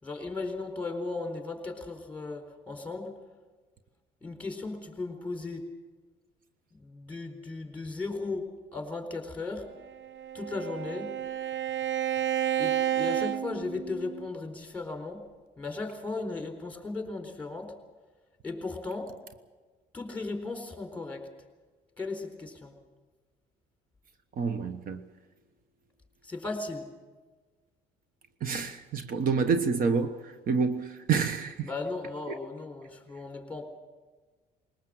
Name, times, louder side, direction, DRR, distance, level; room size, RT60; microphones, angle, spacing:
voice 1, 0.0-3.2 4.2-5.6 6.7-8.5 8.7-9.7 10.3-11.2 12.6-15.3 15.6-17.8 18.4-19.1 19.9-21.2 22.0-22.7 26.2-26.8 31.6-33.6, left 3 dB, 10° left, 4.2 m, -36 dB
Bowed string instrument, 9.8-14.3, right 10 dB, 80° right, 0.9 m, -31 dB
voice 2, 24.3-25.0 28.4-31.7, right 5 dB, 55° right, 1.2 m, -28 dB
21.0 x 19.5 x 7.8 m
cardioid pair, 110°, 17 cm